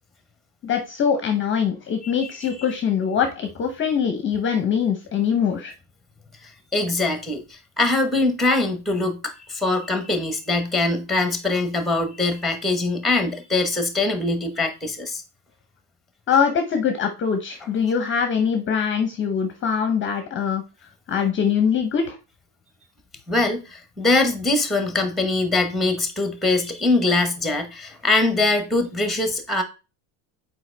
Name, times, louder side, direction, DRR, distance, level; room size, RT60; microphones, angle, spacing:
voice 1, 0.6-5.7 16.3-20.6 21.1-22.2, left 7 dB, 25° left, 0.7 m, -23 dB
voice 2, 6.7-15.2 23.3-29.6, left 2 dB, ahead, 1.0 m, -22 dB
7.6 x 4.6 x 3.3 m
cardioid pair, 155°, 45 cm